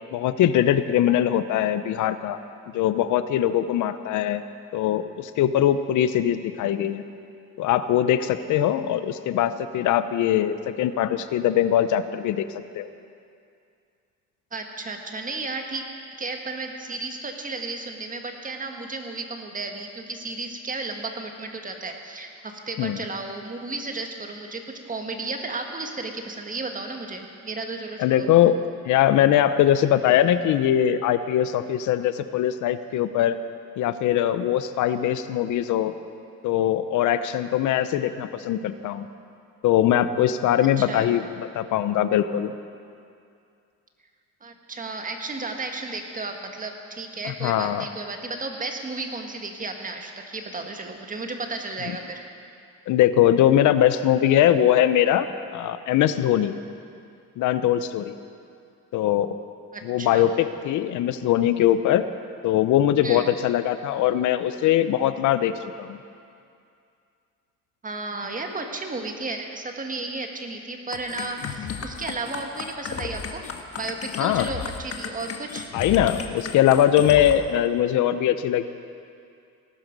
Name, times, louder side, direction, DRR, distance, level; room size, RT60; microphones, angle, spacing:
voice 1, 0.1-2.4 2.7-4.4 4.7-7.0 7.6-12.4 12.7-12.9 22.8-23.0 28.0-28.6 28.9-33.4 33.8-35.9 36.4-39.1 39.6-42.5 47.2-47.9 52.9-56.5 57.4-58.1 58.9-59.3 59.8-62.0 62.4-66.0 74.2-74.5 75.7-78.7, left 11 dB, 75° left, 12 dB, 0.7 m, -21 dB
voice 2, 14.5-15.8 16.2-24.6 24.9-28.3 40.8-41.1 44.4-52.2 59.7-60.4 63.0-63.3 67.8-73.4 73.8-75.7, right 3 dB, 25° right, 3 dB, 1.8 m, -33 dB
sound 1, 70.9-77.3, left 6 dB, 50° left, 1.4 m, -34 dB
18.0 x 12.5 x 5.3 m, 2.4 s
cardioid pair, 100°, 30 cm